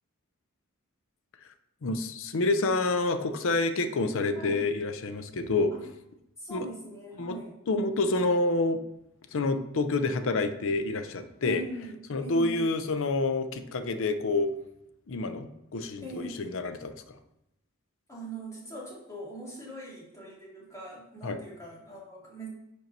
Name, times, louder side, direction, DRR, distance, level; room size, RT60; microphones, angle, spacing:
voice 1, 1.8-5.7 6.5-6.7 7.2-7.4 7.7-8.8 9.3-11.6 12.1-14.5 15.1-16.9 21.2-21.4, left 3 dB, 65° left, 9 dB, 0.6 m, -28 dB
voice 2, 6.4-7.6 11.4-12.7 16.0-16.6 18.1-22.5, right 1 dB, 15° left, -5 dB, 2.1 m, -41 dB
5.3 x 4.5 x 5.2 m, 0.85 s
head